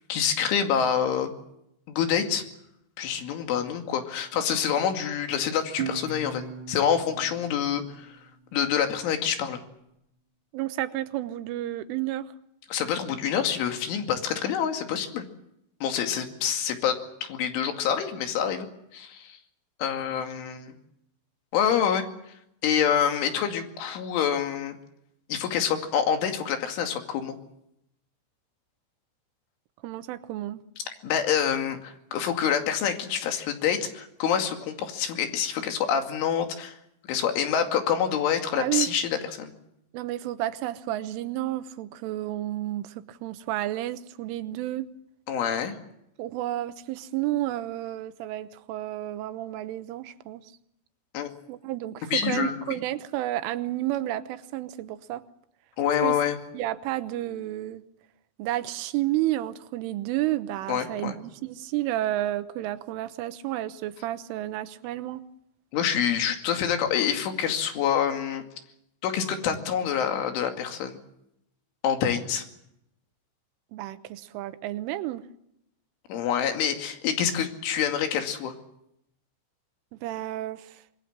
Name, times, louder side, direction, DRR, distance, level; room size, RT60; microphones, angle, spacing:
voice 1, 0.1-1.3 1.9-2.4 3.0-6.4 6.7-8.2 8.5-9.6 12.7-15.2 15.8-18.7 18.9-19.4 19.8-20.7 21.5-22.1 22.6-24.8 25.3-27.4 31.0-36.8 37.1-39.5 45.3-45.8 51.1-51.3 52.1-52.8 55.8-56.4 60.7-61.2 65.7-68.4 69.0-71.0 71.8-72.4 76.1-78.5, left 8 dB, 80° left, 5 dB, 4.8 m, -26 dB
Guitar, 5.8-9.0, right 6 dB, 55° right, 2.2 m, -38 dB
voice 2, 10.5-12.3 29.8-30.6 38.6-38.9 39.9-44.9 46.2-50.5 51.5-55.2 56.0-56.2 56.5-57.8 58.4-65.2 73.7-75.2 80.0-80.8, right 14 dB, 90° right, 12 dB, 3.6 m, -31 dB
25.5 x 21.0 x 7.3 m, 0.80 s
omnidirectional pair, 5.5 m